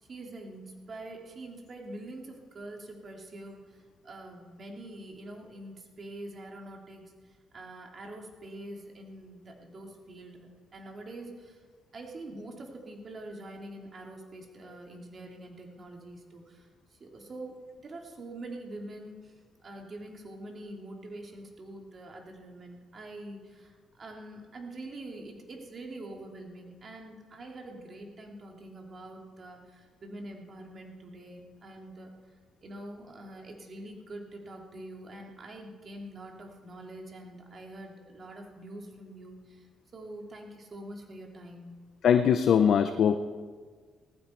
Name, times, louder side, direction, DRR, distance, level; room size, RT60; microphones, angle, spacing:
voice 1, 0.0-11.6 11.9-32.1 32.6-39.7 39.9-41.7, right 1 dB, 45° right, 1 dB, 3.0 m, -45 dB
voice 2, 42.0-43.2, left 8 dB, 65° left, 9 dB, 0.7 m, -21 dB
18.0 x 15.5 x 4.6 m, 1.6 s
cardioid pair, 90°, 0 cm